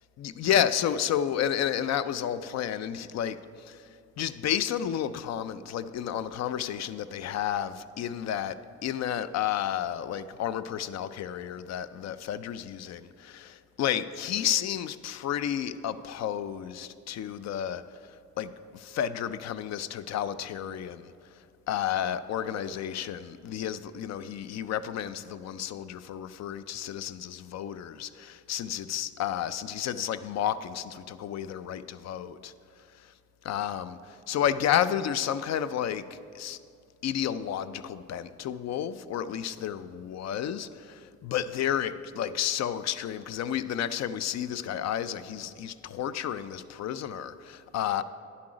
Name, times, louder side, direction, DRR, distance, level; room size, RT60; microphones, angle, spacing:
voice 1, 0.2-3.9 4.2-8.6 8.8-21.1 21.7-32.5 33.0-33.1 33.4-36.0 36.3-36.6 37.0-48.0, left 10 dB, 60° left, 0.4 m, -31 dB
9.7 x 7.6 x 4.9 m
cardioid pair, 90°, 30 cm